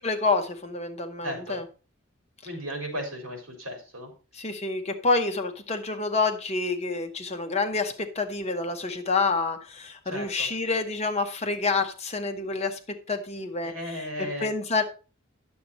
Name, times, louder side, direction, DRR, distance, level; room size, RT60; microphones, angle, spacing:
voice 1, 0.0-1.6 4.3-14.8, left 3 dB, 30° left, 6 dB, 0.9 m, -28 dB
voice 2, 1.2-1.6 2.4-4.1 10.1-10.5 13.6-14.5, equal, 65° right, 3 dB, 3.8 m, -35 dB
10.0 x 7.1 x 4.1 m, 0.35 s
head